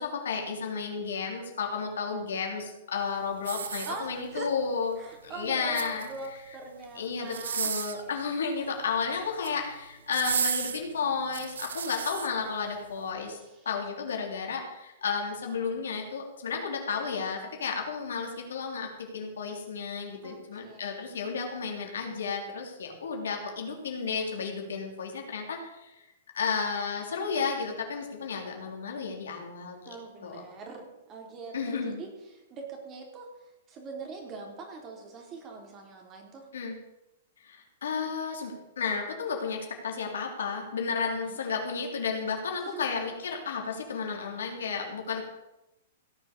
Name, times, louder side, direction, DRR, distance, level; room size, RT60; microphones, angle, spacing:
voice 1, 0.0-6.1 6.9-13.4 13.7-26.0 26.3-30.0 30.2-30.4 31.5-32.0 36.5-36.8 37.4-45.2, left 5 dB, 80° left, 1 dB, 3.4 m, -32 dB
sound 1, 3.4-4.4 5.5-6.3 7.2-8.1 9.2-9.6 10.1-12.3 12.9-13.0, right 6 dB, 80° right, 1.2 m, -33 dB
voice 2, 3.9-4.5 5.0-7.7 8.0-8.1 8.6-8.7 13.3-14.0 20.2-21.0 29.9-33.3 33.7-36.5 41.1-41.4 42.6-42.9, right 3 dB, 30° right, 2 dB, 3.7 m, -43 dB
17.0 x 7.2 x 6.8 m, 0.95 s
hypercardioid pair, 125°, 0 cm